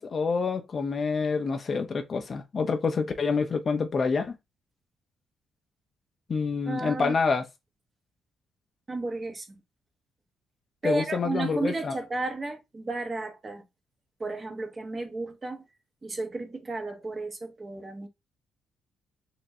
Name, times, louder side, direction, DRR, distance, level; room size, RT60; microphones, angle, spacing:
voice 1, 0.0-4.4 6.3-7.4 10.8-11.9, left 5 dB, 40° left, 0.7 m, -27 dB
voice 2, 6.7-7.2 8.9-9.5 10.8-13.6 14.2-15.6 16.0-18.1, right 2 dB, 30° right, 1.1 m, -33 dB
4.2 x 3.0 x 2.7 m
cardioid pair, 90°, 0 cm